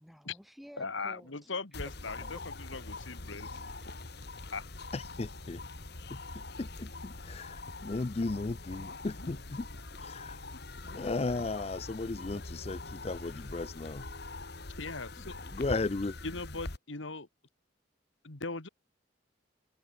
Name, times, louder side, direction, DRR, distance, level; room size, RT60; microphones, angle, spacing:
voice 1, 0.0-1.6 2.2-2.4 3.6-4.2 6.1-6.2, equal, ahead, 5.9 m, -54 dB
voice 2, 0.8-3.5 4.5-4.6 14.8-15.4 16.2-17.3 18.2-18.7, left 3 dB, 70° left, 2.0 m, -39 dB
sound 1, 1.7-16.8, left 2 dB, 55° left, 2.0 m, -43 dB
voice 3, 4.9-5.6 6.1-9.7 10.0-10.4 10.9-14.1 15.4-16.2, left 3 dB, 30° left, 0.4 m, -36 dB
head